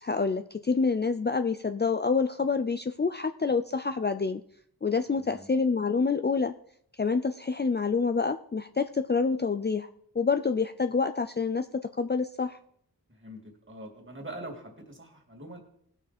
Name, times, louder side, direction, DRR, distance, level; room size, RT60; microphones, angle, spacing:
voice 1, 0.0-4.4 4.8-6.5 7.0-9.9 10.1-11.7 12.0-12.6, left 4 dB, 30° left, 9 dB, 0.5 m, -27 dB
voice 2, 5.2-5.5 13.1-15.6, right 1 dB, 30° right, 1 dB, 2.8 m, -43 dB
18.0 x 6.2 x 4.3 m, 0.68 s
wide cardioid pair, 50°, 38 cm